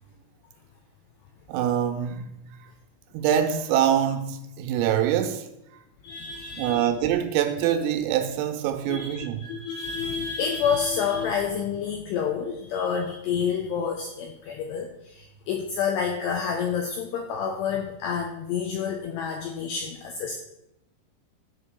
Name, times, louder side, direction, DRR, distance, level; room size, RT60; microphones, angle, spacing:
voice 1, 1.5-2.7 3.1-5.5 6.5-9.5, right 10 dB, 90° right, 3.6 m, -25 dB
voice 2, 6.0-6.9 8.9-20.4, left 6 dB, 85° left, 2.4 m, -29 dB
12.5 x 5.4 x 6.9 m
omnidirectional pair, 6.0 m